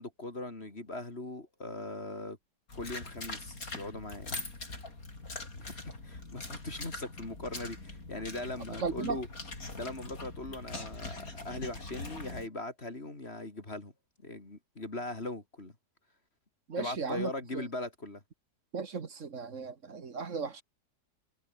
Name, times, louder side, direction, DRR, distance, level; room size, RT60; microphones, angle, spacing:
voice 1, 0.0-2.4 2.8-4.4 5.6-9.3 9.7-13.9 14.2-15.7 16.8-18.2, left 2 dB, 35° left, 3.6 m, -40 dB
sound 1, 2.7-12.5, left 2 dB, 55° left, 5.2 m, -43 dB
voice 2, 8.8-9.2 16.7-17.6 18.7-20.6, right 5 dB, 50° right, 1.8 m, -36 dB
omnidirectional pair, 1.8 m